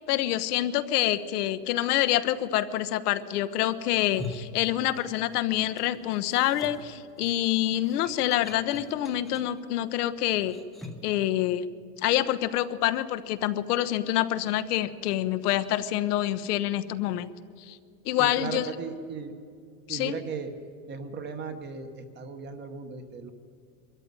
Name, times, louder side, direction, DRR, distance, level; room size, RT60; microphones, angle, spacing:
voice 1, 0.1-10.5 11.0-11.7 12.0-17.3 17.7-17.8 18.1-18.7 19.9-20.2, left 13 dB, 65° left, 11 dB, 1.1 m, -26 dB
sound 1, 3.9-5.3 5.6-11.2, left 2 dB, ahead, 0.9 m, -44 dB
voice 2, 18.2-19.3 19.9-20.5 20.9-23.3, right 5 dB, 20° right, 7 dB, 1.1 m, -37 dB
22.0 x 14.0 x 9.4 m, 2.3 s
supercardioid pair, 165°, 48 cm